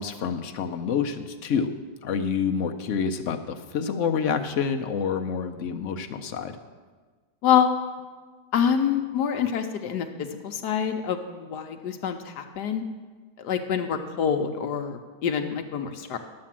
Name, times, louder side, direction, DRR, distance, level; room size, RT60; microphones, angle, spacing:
voice 1, 0.0-1.7 2.0-6.6, left 6 dB, 60° left, 6 dB, 0.8 m, -28 dB
voice 2, 8.5-12.8 13.4-16.2, left 8 dB, 75° left, 5 dB, 1.3 m, -26 dB
10.5 x 7.6 x 7.4 m, 1.4 s
omnidirectional pair, 1.8 m